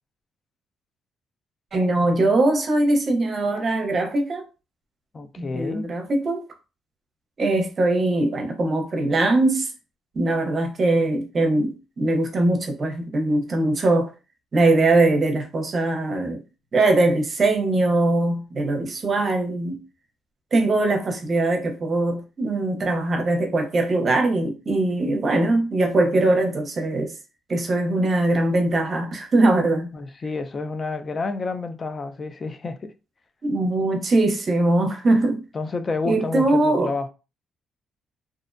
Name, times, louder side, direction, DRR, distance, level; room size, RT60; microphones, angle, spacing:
voice 1, 1.7-4.4 5.4-6.4 7.4-9.7 10.1-14.1 14.5-16.4 16.7-19.8 20.5-27.1 27.5-29.9 33.4-35.4 36.0-36.9, right 2 dB, 45° right, 0.7 m, -21 dB
voice 2, 5.1-5.9 29.9-32.9 35.5-37.1, left 3 dB, 35° left, 0.4 m, -29 dB
2.5 x 2.0 x 2.5 m
cardioid pair, 90°, 0 cm